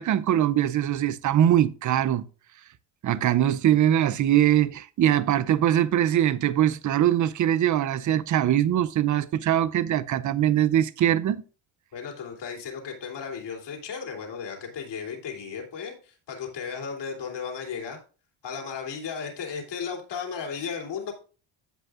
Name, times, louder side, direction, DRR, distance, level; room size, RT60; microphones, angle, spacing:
voice 1, 0.0-2.3 3.0-11.4, right 11 dB, 40° right, 0.5 m, -22 dB
voice 2, 11.9-18.0 18.4-21.1, left 6 dB, 55° left, 3.0 m, -35 dB
15.5 x 5.3 x 2.4 m
cardioid pair, 120°, 49 cm